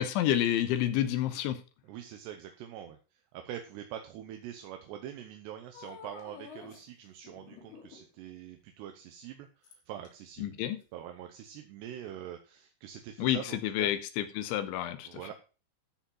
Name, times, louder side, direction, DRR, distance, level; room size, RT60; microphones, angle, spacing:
voice 1, 0.0-1.6 10.4-10.8 13.2-15.2, left 12 dB, 80° left, 11 dB, 3.1 m, -29 dB
voice 2, 1.8-10.6 10.9-14.0 15.1-15.3, right 10 dB, 75° right, 5 dB, 2.7 m, -44 dB
sound 1, 5.7-6.8 7.2-8.2 9.6-10.1 10.8-10.9, left 6 dB, 60° left, 4.0 m, -49 dB
13.0 x 5.1 x 5.5 m, 0.34 s
omnidirectional pair, 5.6 m